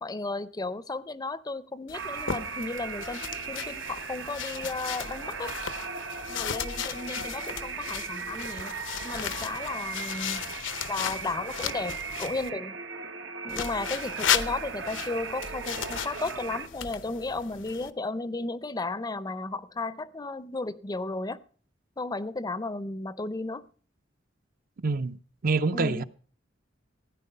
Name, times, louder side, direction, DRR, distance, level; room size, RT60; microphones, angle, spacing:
voice 1, 0.0-5.5 6.3-8.8 9.0-10.5 10.9-12.8 13.4-21.4 22.0-23.7 25.7-26.0, left 3 dB, 20° left, 0.5 m, -34 dB
sound 1, 1.9-12.5 13.5-17.9, left 8 dB, 85° left, 0.8 m, -35 dB
sound 2, 1.9-16.7, right 5 dB, 80° right, 1.1 m, -38 dB
voice 2, 24.8-25.2 25.4-26.0, right 3 dB, 50° right, 0.6 m, -26 dB
16.0 x 9.7 x 5.5 m
head